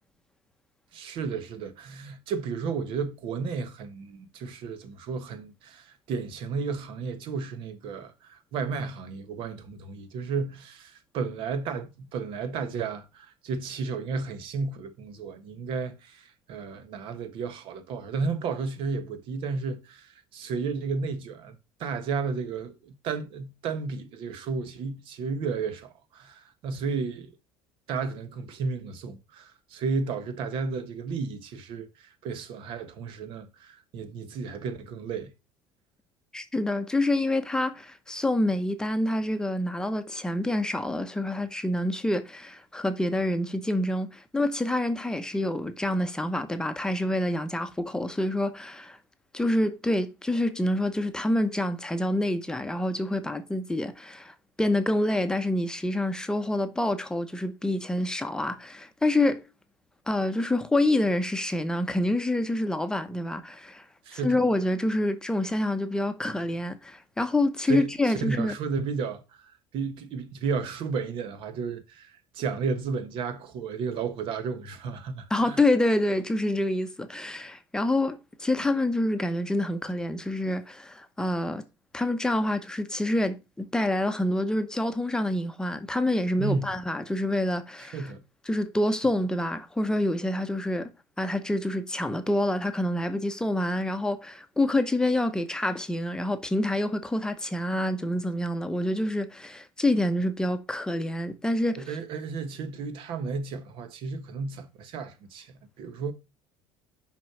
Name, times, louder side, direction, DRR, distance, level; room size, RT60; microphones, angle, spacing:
voice 1, 0.9-27.3 27.9-35.3 64.0-64.4 67.7-75.6 86.4-86.8 87.8-88.2 101.8-106.1, right 5 dB, 60° right, 1.4 m, -33 dB
voice 2, 36.3-49.0 49.3-59.4 60.1-63.8 64.1-68.5 75.3-81.6 81.9-88.1 88.5-90.9 91.2-101.8, left 1 dB, 5° left, 0.9 m, -27 dB
6.1 x 5.2 x 6.0 m
cardioid pair, 120°, 10 cm